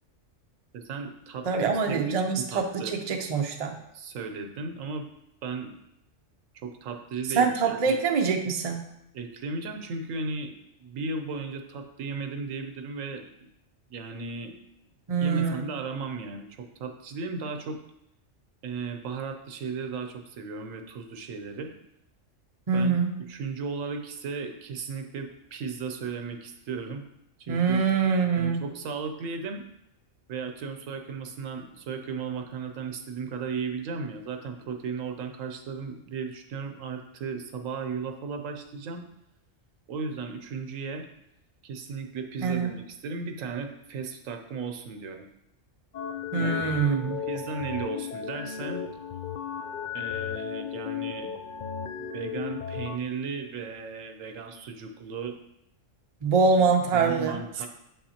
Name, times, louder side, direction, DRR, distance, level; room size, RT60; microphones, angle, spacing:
voice 1, 0.7-3.0 3.9-5.1 5.4-5.7 6.5-8.0 9.1-10.5 10.8-13.5 13.9-14.5 15.2-17.8 18.6-21.7 22.7-23.0 23.3-27.0 27.4-27.8 28.4-29.7 30.3-39.0 39.9-41.1 41.6-45.3 46.4-46.7 47.3-48.8 49.9-51.3 52.0-55.4 56.6-56.7 56.9-57.7, right 4 dB, 80° right, 5 dB, 1.1 m, -35 dB
voice 2, 1.5-3.7 7.3-8.8 15.1-15.6 22.7-23.2 27.5-28.6 42.4-42.7 46.3-47.2 56.2-57.4, right 5 dB, 40° right, 3 dB, 0.6 m, -24 dB
sound 1, 45.9-53.0, left 8 dB, 85° left, 0.4 m, -34 dB
7.3 x 5.6 x 2.9 m, 0.80 s
omnidirectional pair, 1.3 m